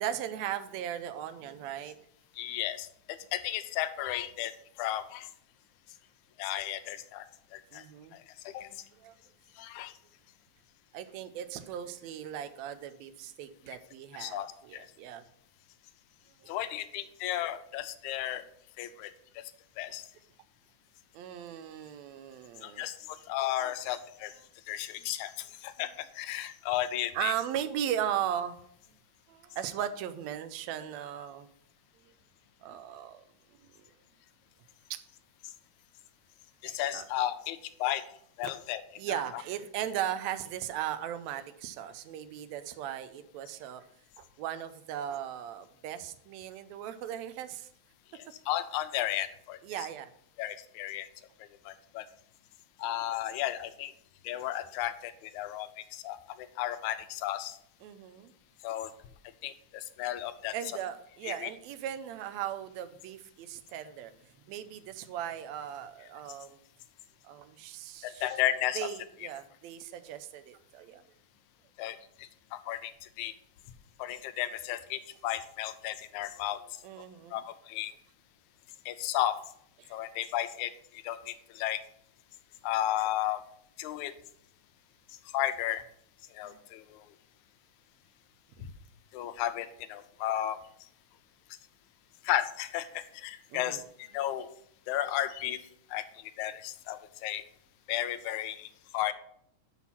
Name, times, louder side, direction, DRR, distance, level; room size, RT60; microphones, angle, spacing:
voice 1, 0.0-2.0 7.7-8.1 9.0-9.2 10.9-15.2 16.4-16.6 21.1-22.9 27.1-28.6 29.3-31.5 32.6-33.3 34.9-35.0 36.6-37.0 39.0-43.8 44.2-47.7 49.6-50.1 57.8-58.3 60.5-64.1 64.5-66.6 67.2-68.3 68.8-71.0 76.8-77.4 79.8-79.9 86.4-86.6 93.5-93.8, right 10 dB, 80° right, 11 dB, 1.7 m, -37 dB
voice 2, 2.4-4.5 4.8-5.3 6.4-7.3 7.5-7.8 8.5-8.7 9.6-9.9 14.1-14.5 14.7-14.9 16.5-18.5 18.8-19.1 19.4-19.5 19.8-20.0 22.6-24.3 24.7-27.3 36.6-38.0 38.4-38.8 39.1-39.2 48.1-49.6 50.4-51.1 51.7-52.1 52.8-53.9 54.2-57.6 58.6-58.9 59.4-60.5 61.2-61.5 68.0-68.9 71.8-72.9 73.2-73.3 74.0-76.6 77.3-77.9 78.9-79.4 79.9-80.7 81.0-81.8 82.6-83.4 83.8-84.1 85.3-85.8 86.4-87.0 88.6-88.7 89.1-90.6 92.2-94.5 94.9-95.6 95.9-96.0 96.4-97.4 97.9-98.7 98.9-99.1, left 13 dB, 85° left, 11 dB, 2.0 m, -34 dB
6.1 x 5.7 x 5.7 m, 0.69 s
omnidirectional pair, 3.4 m